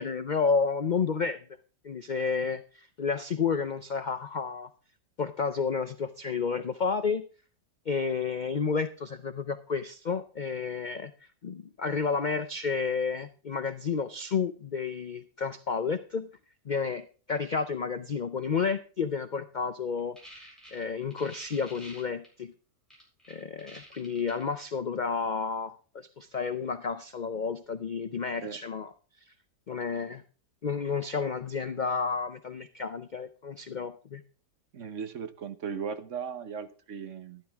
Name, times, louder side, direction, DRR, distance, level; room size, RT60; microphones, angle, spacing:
voice 1, 0.0-1.4 1.8-4.7 5.2-7.2 7.9-11.1 11.4-16.3 16.7-22.5 23.3-28.9 29.7-30.2 30.6-34.2, left 5 dB, 80° left, 11 dB, 0.4 m, -31 dB
sound 1, 20.0-22.3 22.9-24.6, equal, ahead, 8.0 m, -48 dB
voice 2, 34.7-37.4, right 6 dB, 55° right, 10 dB, 1.2 m, -37 dB
12.0 x 12.0 x 3.5 m, 0.37 s
omnidirectional pair, 1.7 m